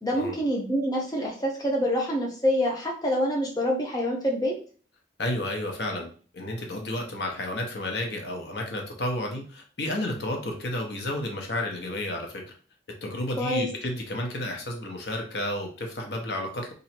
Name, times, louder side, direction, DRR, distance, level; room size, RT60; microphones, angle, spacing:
voice 1, 0.0-4.6 13.4-13.7, equal, 20° left, -1 dB, 0.7 m, -26 dB
voice 2, 5.2-12.4 13.0-16.7, left 1 dB, 70° left, 2 dB, 0.9 m, -31 dB
3.0 x 2.6 x 4.3 m, 0.40 s
head